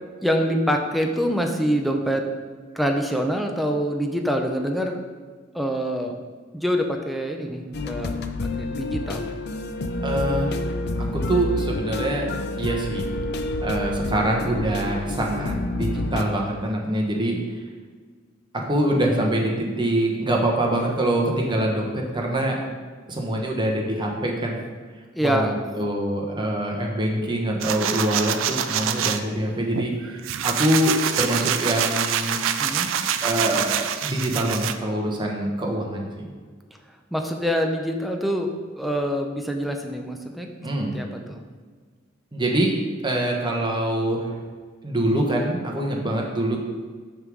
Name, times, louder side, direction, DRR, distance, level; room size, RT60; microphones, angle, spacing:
voice 1, 0.2-2.2 2.7-5.0 5.5-6.2 6.5-8.2 8.6-9.3 15.9-16.1 25.1-25.6 32.6-32.9 37.1-40.5 40.9-41.4, equal, ahead, 3 dB, 0.6 m, -25 dB
sound 1, 7.7-16.2, left 2 dB, 55° left, 0.5 m, -28 dB
voice 2, 10.0-10.6 11.1-12.3 12.6-13.1 13.6-17.4 18.7-22.6 23.1-24.6 25.2-32.4 33.2-36.3 40.6-40.9 42.3-42.7 43.0-44.3 44.8-46.6, right 1 dB, 25° right, 0 dB, 1.1 m, -24 dB
sound 2, 27.6-29.2 29.7-34.7, right 9 dB, 70° right, 0.4 m, -25 dB
6.5 x 3.7 x 6.1 m, 1.5 s
head